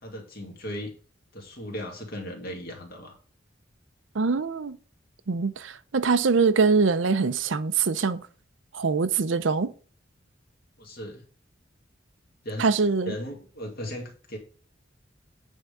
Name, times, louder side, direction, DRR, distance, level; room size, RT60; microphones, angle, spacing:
voice 1, 0.0-0.9 1.3-3.2 10.8-11.2 12.4-12.8 13.1-14.4, equal, 55° left, 2.4 m, -37 dB
voice 2, 4.2-4.8 5.3-8.2 8.7-9.7 12.6-13.1, right 4 dB, 80° right, 0.6 m, -23 dB
9.2 x 3.7 x 6.7 m
head